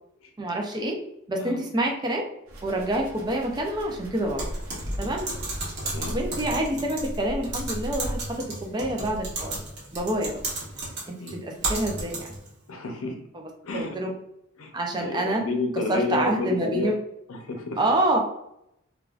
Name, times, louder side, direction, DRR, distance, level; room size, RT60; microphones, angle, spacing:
voice 1, 0.4-1.0 1.3-2.2 2.6-4.4 5.0-5.3 6.1-9.6 9.9-10.4 11.1-12.3 13.7-14.1 14.7-15.4 15.9-17.0 17.8-18.2, right 1 dB, 20° right, 1 dB, 0.4 m, -27 dB
sound 1, 2.5-7.5, equal, 85° right, 0.7 m, -44 dB
Typing, 4.4-12.5, right 2 dB, 50° right, 1.0 m, -33 dB
voice 2, 5.8-6.1 11.2-11.4 12.7-13.2 13.6-14.0 14.6-16.9 17.3-17.8, left 3 dB, 80° left, 3 dB, 0.6 m, -30 dB
3.5 x 2.3 x 2.4 m, 0.79 s
head